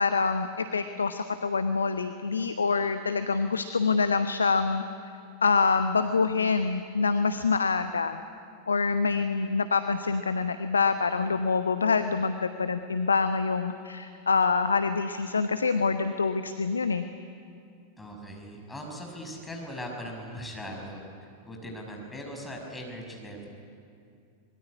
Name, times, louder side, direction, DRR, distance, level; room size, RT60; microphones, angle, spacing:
voice 1, 0.0-4.8 5.4-8.2 8.7-17.0, left 4 dB, 75° left, 10 dB, 0.9 m, -26 dB
voice 2, 18.0-21.0 21.4-23.5, equal, 10° left, 1 dB, 6.0 m, -39 dB
26.0 x 21.5 x 9.7 m, 2.4 s
figure-of-eight pair, 90°, 0 cm